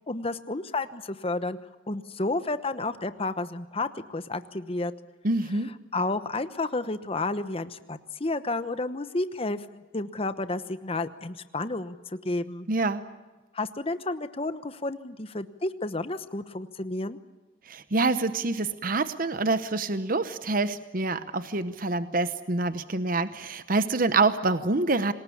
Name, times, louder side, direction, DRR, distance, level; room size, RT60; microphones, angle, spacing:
voice 1, 0.0-1.6 1.9-4.9 5.9-12.7 13.5-17.2, left 2 dB, 30° left, 12 dB, 1.0 m, -31 dB
voice 2, 5.2-5.7 12.7-13.0 17.7-25.1, right 3 dB, 45° right, 12 dB, 0.9 m, -26 dB
26.5 x 20.0 x 8.6 m, 1.2 s
head